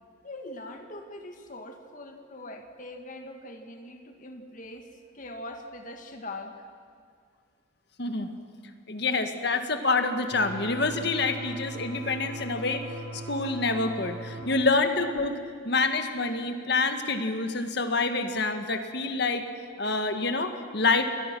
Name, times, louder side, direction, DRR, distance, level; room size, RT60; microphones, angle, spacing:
voice 1, 0.2-4.9 5.1-6.6 14.4-14.6, left 1 dB, 40° left, 4 dB, 1.9 m, -42 dB
voice 2, 8.0-8.3 8.9-12.8 13.1-15.4 15.6-19.5 19.8-21.0, left 3 dB, 55° left, 7 dB, 1.7 m, -27 dB
sound 1, 10.3-14.4, right 2 dB, 25° right, 6.0 m, -39 dB
29.0 x 21.0 x 6.2 m, 2.1 s
head